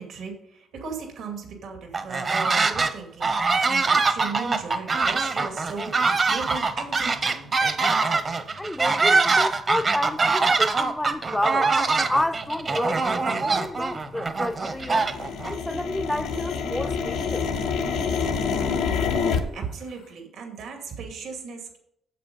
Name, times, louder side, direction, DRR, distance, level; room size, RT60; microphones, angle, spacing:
voice 1, 0.0-7.5 19.5-21.8, right 5 dB, 75° right, 2.4 m, -37 dB
sound 1, 1.9-2.9 3.2-15.5, right 4 dB, 40° right, 0.9 m, -23 dB
sound 2, 8.6-8.7 9.3-9.4 10.0-10.3 10.8-10.9 11.1-11.7 12.0-14.3 14.6-19.4, left 5 dB, 90° left, 1.5 m, -28 dB
voice 2, 8.6-11.7 12.1-15.1 15.5-17.5, left 1 dB, 10° left, 0.4 m, -30 dB
8.6 x 7.8 x 5.4 m
cardioid pair, 90°, 0 cm